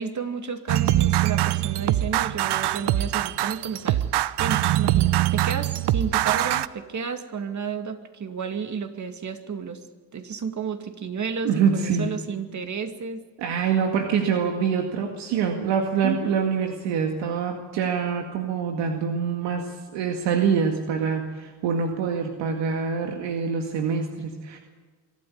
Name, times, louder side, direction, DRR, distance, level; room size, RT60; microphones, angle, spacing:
voice 1, 0.0-4.0 4.4-9.8 10.1-13.2 13.6-13.7 16.0-16.4, right 6 dB, 40° right, 8 dB, 2.4 m, -32 dB
sound 1, 0.7-6.7, right 14 dB, 70° right, 0.9 m, -23 dB
voice 2, 11.4-12.1 13.4-24.6, right 6 dB, 90° right, 4 dB, 2.2 m, -25 dB
24.0 x 13.0 x 9.7 m, 1.4 s
cardioid pair, 90°, 43 cm